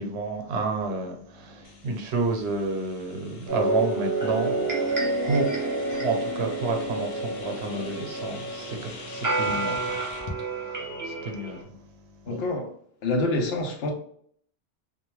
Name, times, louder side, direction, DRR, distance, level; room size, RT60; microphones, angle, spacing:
voice 1, 0.0-4.7 5.2-5.5 5.9-10.0 10.4-11.8 12.3-12.4, right 3 dB, 80° right, 0.9 m, -30 dB
sound 1, 1.6-10.4, left 2 dB, 50° left, 0.4 m, -43 dB
sound 2, 3.5-11.6, right 2 dB, 20° right, 0.7 m, -29 dB
voice 2, 12.3-12.7 13.0-13.9, left 2 dB, 70° left, 0.8 m, -26 dB
2.3 x 2.2 x 3.0 m
omnidirectional pair, 1.1 m